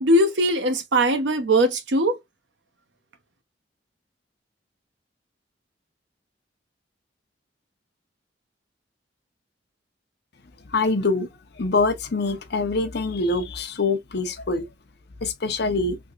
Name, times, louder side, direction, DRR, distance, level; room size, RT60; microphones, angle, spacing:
voice 1, 0.0-2.2, right 1 dB, 75° right, 0.8 m, -20 dB
voice 2, 10.7-11.3 11.6-14.7 15.2-16.0, left 3 dB, 60° left, 0.7 m, -24 dB
3.5 x 2.9 x 2.4 m
head